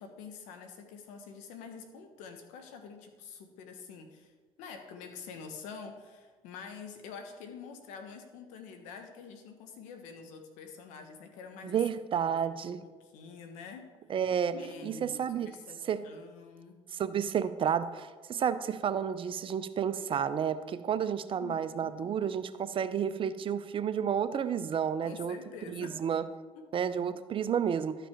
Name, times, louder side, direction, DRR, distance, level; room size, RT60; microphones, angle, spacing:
voice 1, 0.0-4.3 4.6-11.8 12.1-13.9 14.5-16.8 21.4-22.0 25.0-26.0 26.5-26.7, left 5 dB, 80° left, 5 dB, 1.3 m, -47 dB
voice 2, 11.6-12.8 14.1-14.5 14.8-15.5 15.8-16.0 16.9-25.3 25.7-26.2 26.7-28.0, right 8 dB, 45° right, 12 dB, 0.6 m, -31 dB
12.5 x 5.1 x 4.5 m, 1.4 s
supercardioid pair, 75°, 12 cm